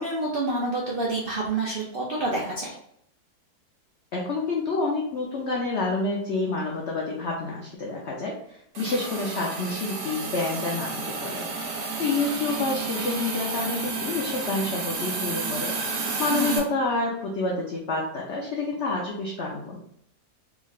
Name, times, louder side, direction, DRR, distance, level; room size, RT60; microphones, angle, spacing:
voice 1, 0.0-2.7 16.3-16.7, right 2 dB, 60° right, -4 dB, 0.6 m, -28 dB
voice 2, 4.1-11.5 12.0-15.7 16.2-19.8, left 3 dB, 60° left, -2 dB, 0.8 m, -28 dB
Hiss, 8.7-16.6, right 4 dB, 85° right, 1.5 m, -31 dB
3.7 x 3.2 x 2.4 m, 0.71 s
omnidirectional pair, 1.7 m